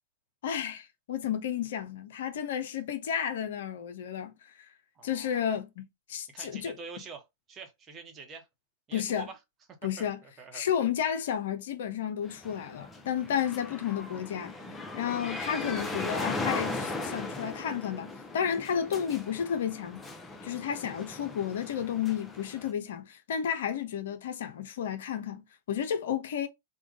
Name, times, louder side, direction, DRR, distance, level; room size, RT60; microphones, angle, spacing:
voice 1, 0.4-4.3 5.0-6.7 8.9-9.3 9.8-10.2 10.5-14.6 15.0-20.1 20.4-26.5, left 9 dB, 55° left, 0.5 m, -32 dB
voice 2, 4.9-5.6 6.3-8.5 8.9-9.4 10.0-10.6, right 5 dB, 25° right, 1.0 m, -46 dB
sound 1, 12.2-22.7, left 2 dB, 10° left, 0.6 m, -38 dB
3.6 x 2.2 x 3.6 m
figure-of-eight pair, 100°, 0 cm